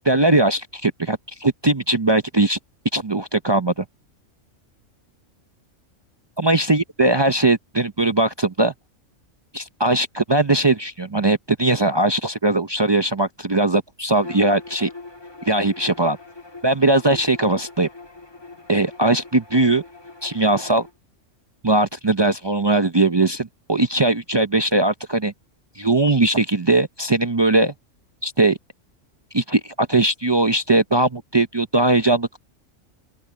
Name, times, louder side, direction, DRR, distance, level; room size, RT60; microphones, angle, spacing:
voice 1, 0.0-2.6 2.9-3.8 6.4-8.7 9.5-14.9 15.5-16.2 16.6-17.9 18.7-19.8 20.2-20.9 21.6-25.3 25.8-27.7 28.2-28.6 29.3-32.4, right 2 dB, 30° right, 0.5 m, -20 dB
Bowed string instrument, 14.2-20.9, left 3 dB, 20° left, 1.7 m, -42 dB
open air
omnidirectional pair, 1.3 m